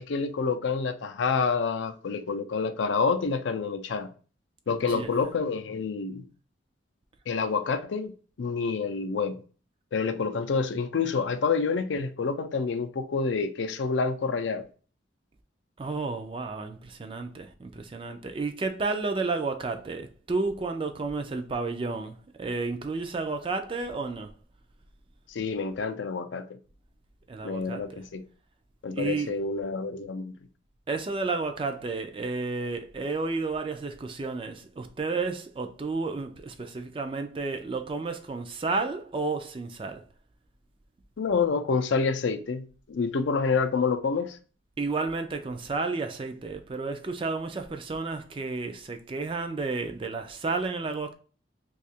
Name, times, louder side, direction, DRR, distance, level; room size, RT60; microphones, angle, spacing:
voice 1, 0.0-4.1 4.7-6.3 7.3-9.4 9.9-14.7 25.3-26.6 27.4-28.2 28.8-30.3 41.2-44.4, left 5 dB, 70° left, 0.4 m, -28 dB
voice 2, 15.8-24.3 27.3-28.0 28.9-29.4 30.9-40.0 44.8-51.1, right 3 dB, 25° right, 0.3 m, -31 dB
2.7 x 2.4 x 4.2 m
head